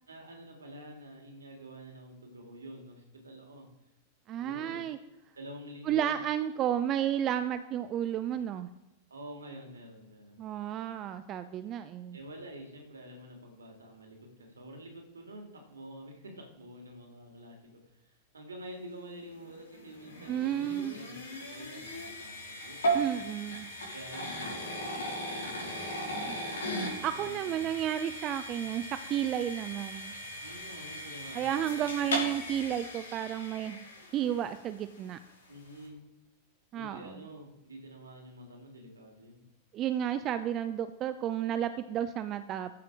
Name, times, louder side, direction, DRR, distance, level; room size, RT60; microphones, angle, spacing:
voice 1, 0.1-3.7 4.4-4.8 5.3-6.2 9.1-10.5 12.1-23.1 23.9-26.7 27.0-27.7 30.4-31.9 35.5-36.0 36.7-39.5, equal, 75° right, 2 dB, 2.6 m, -48 dB
voice 2, 4.3-5.0 5.8-8.7 10.4-12.2 20.3-20.9 22.9-23.7 26.2-26.4 26.8-30.1 31.3-33.8 34.1-35.2 36.7-37.2 39.7-42.8, right 10 dB, 35° right, 11 dB, 0.5 m, -32 dB
sound 1, 19.3-34.5, right 1 dB, 65° left, 3.4 m, -37 dB
13.5 x 5.9 x 4.9 m, 1.1 s
figure-of-eight pair, 90°, 0 cm